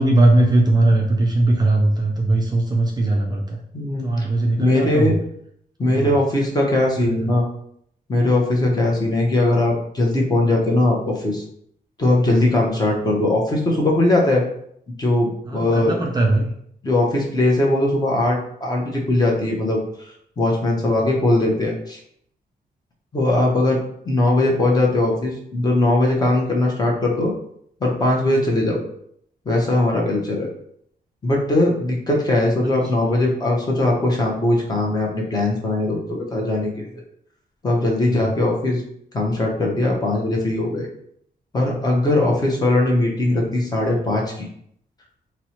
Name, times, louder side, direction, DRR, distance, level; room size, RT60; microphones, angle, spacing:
voice 1, 0.0-3.6 4.0-5.2 5.8-6.1 7.0-7.3 8.7-8.8 12.2-12.3 15.5-16.5 20.9-21.0 33.0-33.2 38.1-38.3, right 2 dB, 25° right, -1 dB, 0.4 m, -19 dB
voice 2, 3.7-4.1 4.6-5.2 5.8-7.4 8.1-11.4 12.0-14.4 15.0-16.0 16.8-19.8 20.4-22.0 23.1-23.8 24.0-27.3 27.8-28.8 29.5-30.5 31.2-37.0 37.6-38.8 39.1-40.9 41.5-44.5, left 2 dB, 25° left, -1 dB, 0.7 m, -20 dB
4.2 x 2.1 x 2.9 m, 0.68 s
wide cardioid pair, 155°, 17 cm